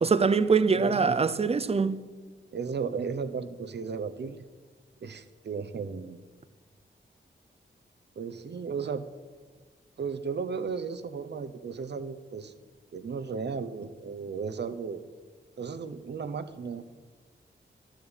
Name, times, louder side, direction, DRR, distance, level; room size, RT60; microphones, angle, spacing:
voice 1, 0.0-2.0, right 5 dB, 30° right, 0.6 m, -23 dB
voice 2, 0.6-1.1 2.5-4.4 5.0-6.2 8.2-9.0 10.0-12.5 12.9-15.0 15.6-16.8, right 5 dB, 60° right, 0.9 m, -35 dB
12.0 x 7.4 x 9.0 m
wide cardioid pair, 105°, 20 cm